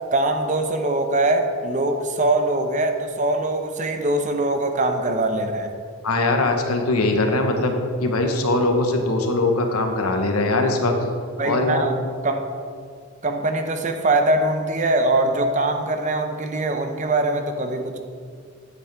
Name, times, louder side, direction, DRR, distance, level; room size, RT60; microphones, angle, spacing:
voice 1, 0.1-5.7 11.4-12.4 13.2-18.0, right 2 dB, 35° right, 5 dB, 0.7 m, -22 dB
voice 2, 6.0-10.9 11.4-11.9, left 2 dB, 90° left, 4 dB, 1.1 m, -21 dB
9.8 x 8.3 x 3.4 m, 2.1 s
head